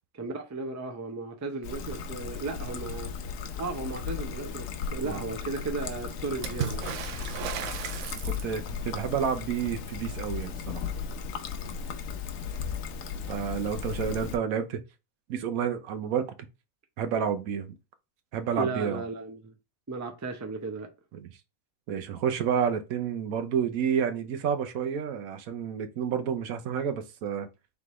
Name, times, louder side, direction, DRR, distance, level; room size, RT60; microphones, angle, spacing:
voice 1, 0.1-3.1 3.6-6.9 18.6-19.5 19.9-20.9, right 3 dB, 25° right, 0.4 m, -35 dB
Trickle dribble, 1.6-14.4, left 6 dB, 75° left, 1.0 m, -36 dB
Water / Splash splatter, 6.4-8.8 12.1-12.2 12.5-13.2 14.3-14.4, right 9 dB, 70° right, 0.9 m, -35 dB
voice 2, 7.3-7.7 8.1-10.5 13.3-14.8 15.3-16.3 17.0-17.7 18.3-19.0 21.1-21.3 21.9-27.5, right 7 dB, 85° right, 1.1 m, -30 dB
4.0 x 3.4 x 3.0 m
omnidirectional pair, 1.4 m